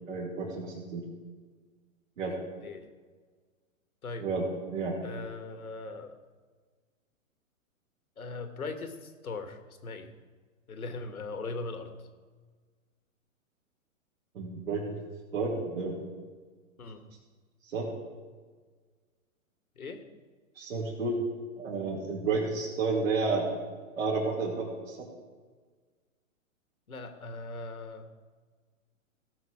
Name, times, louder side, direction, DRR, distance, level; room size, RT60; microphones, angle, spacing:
voice 1, 0.1-1.0 2.2-2.3 4.2-5.0 14.3-15.0 15.3-16.0 17.6-17.9 20.5-21.2 21.6-23.5 24.0-25.1, right 3 dB, 70° right, -6 dB, 2.8 m, -31 dB
voice 2, 5.0-6.2 8.2-10.1 10.7-11.9 16.8-17.0 19.8-20.0 26.9-28.1, left 3 dB, 85° left, 8 dB, 1.6 m, -39 dB
16.5 x 6.8 x 4.9 m, 1.5 s
hypercardioid pair, 125°, 42 cm